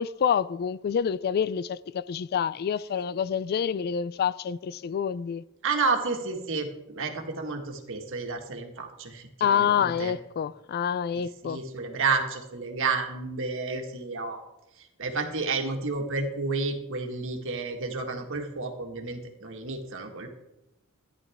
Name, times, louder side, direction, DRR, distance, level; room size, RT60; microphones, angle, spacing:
voice 1, 0.0-5.4 9.4-11.6, left 7 dB, 45° left, 0.3 m, -27 dB
voice 2, 5.6-10.1 11.1-14.4 14.8-20.3, right 4 dB, 65° right, 1.7 m, -31 dB
14.5 x 10.5 x 3.5 m
head